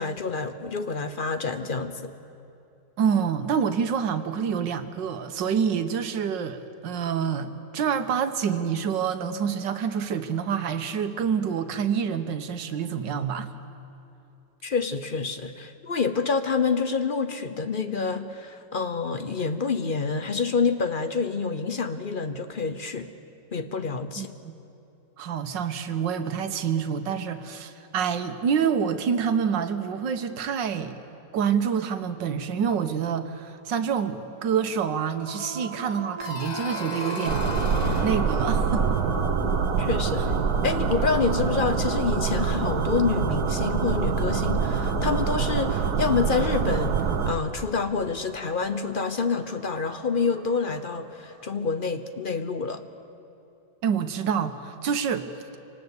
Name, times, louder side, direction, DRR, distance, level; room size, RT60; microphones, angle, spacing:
voice 1, 0.0-2.1 14.6-23.1 23.5-24.3 39.8-40.3 40.6-52.8, left 5 dB, 40° left, 9 dB, 0.8 m, -27 dB
voice 2, 3.0-13.5 24.2-24.6 25.2-31.0 31.3-37.5 38.0-39.0 40.2-40.3 53.8-55.3, right 7 dB, 85° right, 9 dB, 1.8 m, -27 dB
sound 1, 34.2-51.5, right 3 dB, 25° right, 0.8 m, -41 dB
sound 2, 36.2-40.9, left 5 dB, 80° left, 0.3 m, -37 dB
sound 3, 37.3-47.3, right 5 dB, 65° right, 1.7 m, -25 dB
27.5 x 18.5 x 8.2 m, 2.7 s
omnidirectional pair, 1.9 m